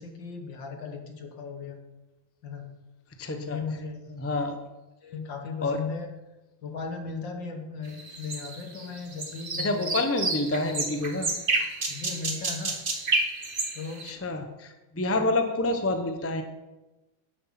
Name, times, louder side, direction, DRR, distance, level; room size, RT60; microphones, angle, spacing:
voice 1, 0.0-1.8 2.4-2.7 3.3-4.1 5.0-6.1 6.6-10.0 11.9-12.8 13.7-14.1 15.1-15.3, left 5 dB, 65° left, 4 dB, 2.2 m, -37 dB
voice 2, 3.2-3.6 4.2-4.6 5.6-5.8 9.6-11.3 14.0-16.4, left 2 dB, 20° left, 5 dB, 0.4 m, -28 dB
sound 1, 8.0-14.1, right 3 dB, 30° right, 1.3 m, -30 dB
11.5 x 7.8 x 6.0 m, 1.1 s
omnidirectional pair, 2.2 m